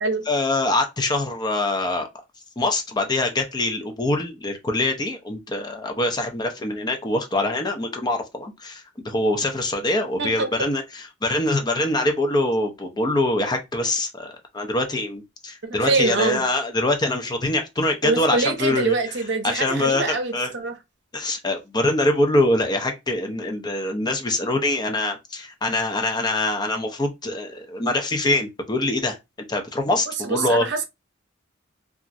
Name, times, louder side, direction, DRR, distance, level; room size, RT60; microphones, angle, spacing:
voice 1, 0.3-2.1 2.6-19.0 19.4-20.5 21.1-29.2 29.5-30.7, left 2 dB, 20° left, 0.5 m, -24 dB
voice 2, 10.2-10.5 15.6-16.4 18.0-20.7 30.2-30.8, right 3 dB, 60° right, 0.6 m, -24 dB
2.9 x 2.4 x 2.5 m
head